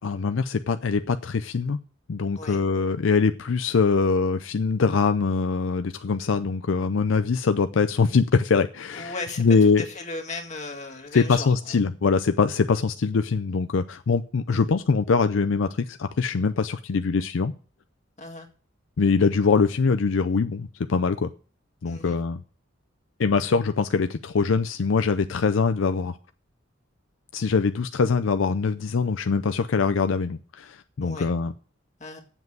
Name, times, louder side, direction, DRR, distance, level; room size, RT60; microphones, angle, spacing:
voice 1, 0.0-1.8 2.1-9.8 11.1-17.5 19.0-21.3 21.8-22.4 23.2-26.2 27.3-31.5, left 4 dB, 80° left, 0.5 m, -23 dB
voice 2, 8.9-9.4 9.8-11.8 14.5-14.6 18.2-18.5 21.8-22.2 23.3-23.5 31.0-31.3 32.0-32.2, left 3 dB, 35° left, 1.9 m, -36 dB
8.0 x 7.3 x 7.8 m
head